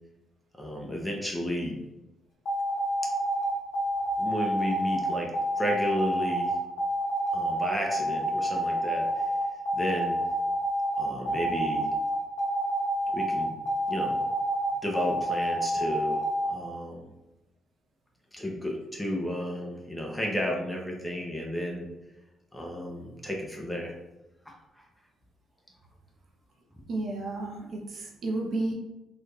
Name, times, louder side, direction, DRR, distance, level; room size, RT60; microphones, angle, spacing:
voice 1, 0.6-1.8 4.2-5.3 5.6-6.5 7.3-9.3 9.7-10.2 11.0-11.9 13.1-13.5 13.9-14.2 14.8-16.2 16.5-17.1 18.3-21.9 22.5-23.9 24.5-24.6, equal, 10° left, -1 dB, 0.9 m, -32 dB
sound 1, 2.4-16.5, right 1 dB, 65° left, 1.0 m, -28 dB
voice 2, 26.9-28.7, right 2 dB, 60° right, 1 dB, 0.8 m, -32 dB
4.0 x 2.6 x 3.2 m, 0.99 s
cardioid pair, 90°, 0 cm